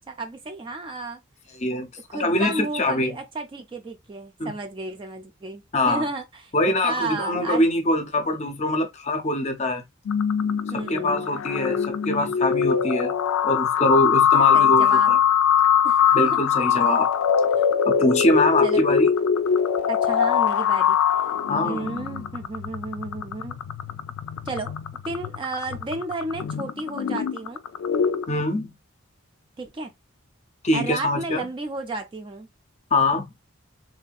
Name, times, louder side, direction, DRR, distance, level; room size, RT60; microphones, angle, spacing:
voice 1, 0.1-1.2 2.1-7.7 10.7-11.3 14.5-15.1 15.8-16.4 18.6-19.0 19.9-21.0 21.6-23.6 24.5-24.7 25.0-27.6 29.6-29.9 30.7-32.5, right 3 dB, 25° right, 0.3 m, -32 dB
voice 2, 1.6-3.2 4.4-4.5 5.7-6.0 6.5-9.8 10.7-13.1 13.4-15.2 16.1-17.1 17.9-19.1 21.5-22.0 28.3-28.7 30.6-31.5 32.9-33.3, left 1 dB, 30° left, 0.6 m, -23 dB
sound 1, 10.1-28.3, left 8 dB, 80° left, 0.3 m, -22 dB
3.2 x 2.6 x 2.2 m
head